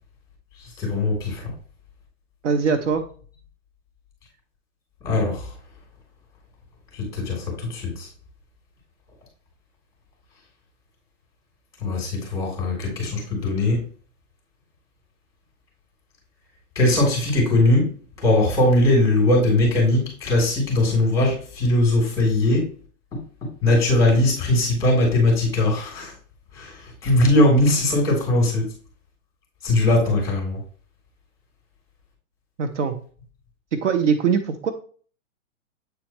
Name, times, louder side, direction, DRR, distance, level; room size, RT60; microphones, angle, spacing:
voice 1, 0.8-1.4 5.0-5.5 6.9-8.1 11.8-13.8 16.7-17.9 18.2-22.7 23.6-26.1 26.5-28.7 29.6-30.6, left 1 dB, 10° left, -2 dB, 3.3 m, -20 dB
voice 2, 2.4-3.0 32.6-33.0 33.7-34.7, right 6 dB, 60° right, 9 dB, 1.0 m, -22 dB
8.4 x 4.4 x 3.1 m, 0.42 s
hypercardioid pair, 160°, 41 cm